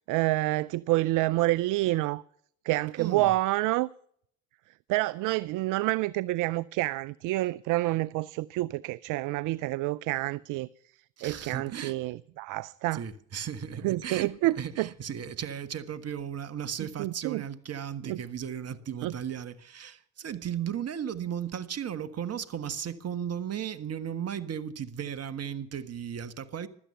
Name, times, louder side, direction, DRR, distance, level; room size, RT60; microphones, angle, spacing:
voice 1, 0.1-2.2 2.6-3.9 4.9-10.7 11.2-13.0 13.8-14.9 17.0-17.4 18.0-18.2 19.0-19.1, right 18 dB, 55° right, 0.5 m, -28 dB
voice 2, 3.0-3.3 11.2-12.0 12.9-26.7, right 8 dB, 40° right, 1.4 m, -35 dB
16.5 x 12.5 x 5.6 m
hypercardioid pair, 65°, 37 cm